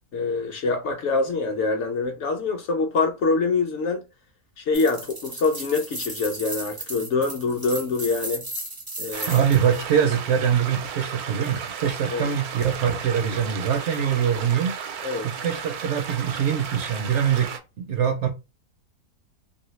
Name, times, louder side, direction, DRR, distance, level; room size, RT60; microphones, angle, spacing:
voice 1, 0.1-4.0 4.6-8.4 9.0-9.4 12.1-12.3 15.0-15.3, left 4 dB, 65° left, 0.8 m, -25 dB
sound 1, 4.7-9.8, right 1 dB, 30° right, 0.4 m, -35 dB
sound 2, 9.1-17.6, right 7 dB, 85° right, 1.1 m, -34 dB
voice 2, 9.3-14.8 15.2-17.5 17.8-18.3, right 8 dB, 65° right, 0.7 m, -23 dB
2.7 x 2.7 x 3.0 m
omnidirectional pair, 1.6 m